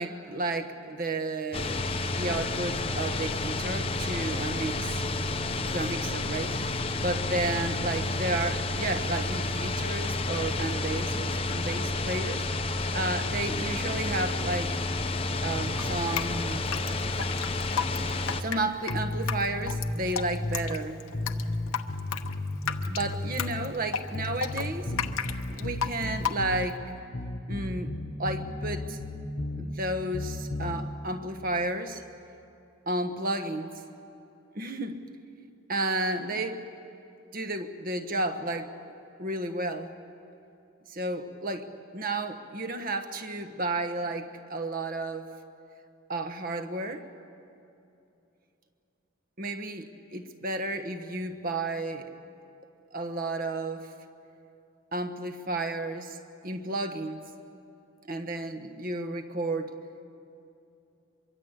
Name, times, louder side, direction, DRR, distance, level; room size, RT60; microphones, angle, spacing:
voice 1, 0.0-1.8 2.1-5.0 5.7-14.8 15.4-16.7 18.2-21.0 22.9-25.0 25.5-26.8 27.5-29.0 29.6-32.0 32.9-33.8 34.5-35.0 35.7-36.6 37.3-38.9 39.2-40.0 40.9-45.3 46.1-47.1 49.4-52.1 52.9-53.9 54.9-56.2 56.4-57.2 58.1-59.8, right 2 dB, 40° right, 8 dB, 1.2 m, -32 dB
sound 1, 1.5-18.4, left 2 dB, 25° left, 0.8 m, -30 dB
Drip, 15.8-26.8, left 7 dB, 80° left, 1.0 m, -34 dB
sound 2, 18.9-20.7 21.1-23.7 24.1-26.7 27.1-29.7 30.1-30.8, left 2 dB, 45° left, 1.1 m, -34 dB
24.0 x 23.5 x 8.2 m, 2.7 s
head